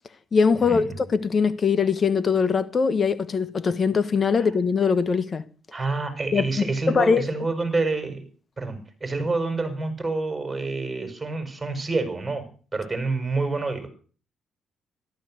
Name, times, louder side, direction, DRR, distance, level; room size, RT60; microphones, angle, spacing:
voice 1, 0.3-5.4 6.3-6.4 6.9-7.3, left 5 dB, 40° left, 1.3 m, -22 dB
voice 2, 5.7-8.2 8.6-12.5 12.7-13.9, right 3 dB, 20° right, 6.4 m, -27 dB
14.0 x 13.0 x 7.9 m
cardioid pair, 90°, 0 cm